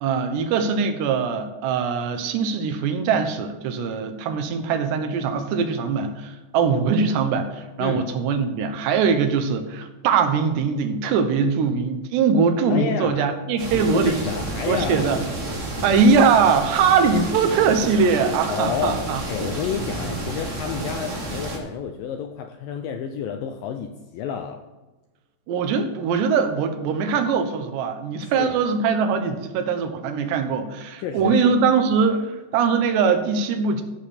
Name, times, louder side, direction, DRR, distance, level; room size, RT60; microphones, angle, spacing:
voice 1, 0.0-14.2 14.7-15.2 15.8-19.2 25.5-33.8, right 5 dB, 90° right, 7 dB, 3.3 m, -21 dB
voice 2, 12.7-13.3 13.7-15.2 18.5-19.0 19.3-24.6 28.2-28.6 31.0-31.5 32.1-32.2, left 8 dB, 80° left, 5 dB, 2.0 m, -30 dB
sound 1, 13.6-21.6, right 1 dB, 35° right, 1.1 m, -30 dB
14.5 x 6.6 x 4.3 m, 1.2 s
omnidirectional pair, 4.8 m